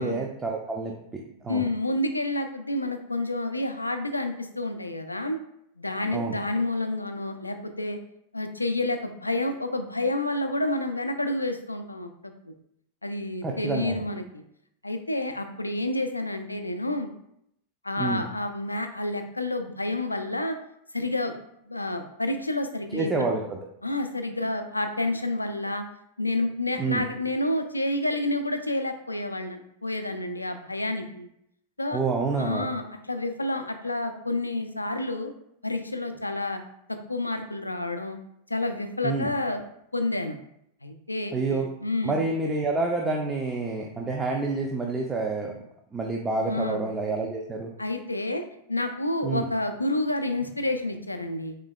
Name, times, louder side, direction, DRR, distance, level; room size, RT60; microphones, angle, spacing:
voice 1, 0.0-1.6 6.1-6.3 13.4-14.0 18.0-18.2 22.9-23.6 26.8-27.0 31.9-32.7 39.0-39.3 41.3-41.7 42.0-45.5 45.9-47.7 49.2-49.4, right 3 dB, 15° right, 0 dB, 0.4 m, -28 dB
voice 2, 1.5-5.4 5.8-8.0 8.3-12.5 13.0-14.4 14.8-17.1 17.8-20.6 20.9-21.3 21.7-23.3 23.8-25.8 26.2-31.3 31.8-32.0 32.4-35.3 35.6-36.6 36.9-38.2 38.5-39.6 39.9-40.4 40.8-42.2 46.4-46.8 47.8-48.4 48.7-51.6, left 2 dB, 85° left, 7 dB, 0.3 m, -29 dB
3.6 x 3.3 x 2.2 m, 0.76 s
figure-of-eight pair, 90°, 0 cm